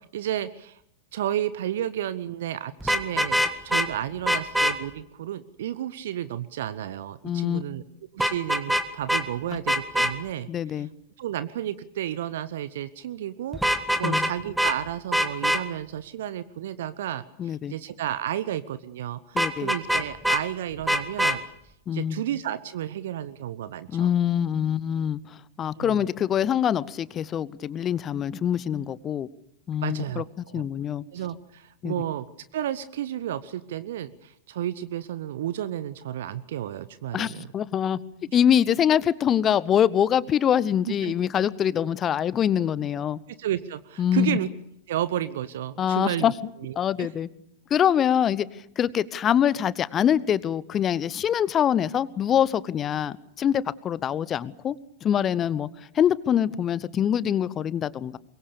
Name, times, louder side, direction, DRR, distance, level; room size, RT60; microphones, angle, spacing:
voice 1, 0.1-0.8 1.1-7.8 8.1-10.8 11.2-21.4 21.9-24.1 25.7-26.1 29.8-30.7 31.1-32.3 32.5-37.4 40.9-41.1 43.4-44.5 44.9-46.3 46.6-47.1, right 11 dB, 60° right, 15 dB, 0.8 m, -32 dB
Vehicle horn car horn honking, 2.8-3.9 4.3-4.7 8.2-8.8 9.1-9.2 9.7-10.1 13.5-14.3 14.6-14.8 15.1-15.6 19.4-20.4 20.9-21.4, equal, 5° right, 1.8 m, -23 dB
voice 2, 7.2-7.6 10.5-10.9 14.0-14.3 17.4-17.7 19.3-19.7 21.9-22.2 23.9-29.3 29.7-31.0 31.8-31.9 37.1-38.0 38.3-43.2 44.0-44.4 45.8-46.3 46.8-47.3 47.7-54.8 55.0-55.7 55.9-58.2, left 9 dB, 25° left, 20 dB, 0.9 m, -24 dB
23.5 x 22.5 x 6.9 m, 0.73 s
figure-of-eight pair, 90°, 0 cm